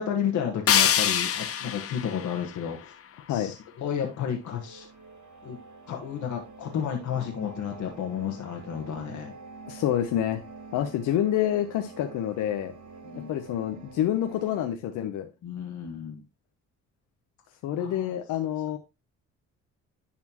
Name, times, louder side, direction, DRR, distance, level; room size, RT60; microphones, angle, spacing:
voice 1, 0.0-2.9 3.3-4.9 5.4-5.6 5.9-9.3 13.0-13.3 15.4-16.2 17.8-18.1, left 8 dB, 70° left, 2 dB, 1.4 m, -32 dB
sound 1, 0.7-3.6, left 9 dB, 50° left, 0.8 m, -26 dB
sound 2, 4.4-14.7, right 4 dB, 70° right, 1.3 m, -47 dB
voice 2, 9.7-10.4 10.7-12.7 13.3-15.3 17.6-18.8, left 11 dB, 90° left, 6 dB, 0.8 m, -27 dB
11.0 x 4.3 x 2.9 m, 0.26 s
cardioid pair, 90°, 30 cm